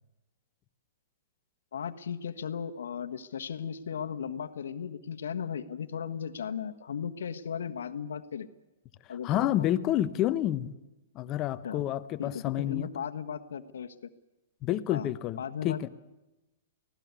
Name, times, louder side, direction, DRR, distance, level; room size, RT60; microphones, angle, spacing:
voice 1, 1.7-8.5 9.1-9.9 11.6-11.9 12.2-14.1 14.9-15.1 15.4-15.9, left 7 dB, 75° left, 7 dB, 1.5 m, -36 dB
voice 2, 9.2-10.7 11.1-12.9 14.6-15.9, left 12 dB, 30° left, 14 dB, 1.1 m, -29 dB
24.5 x 17.0 x 8.4 m, 1.0 s
hypercardioid pair, 125°, 0 cm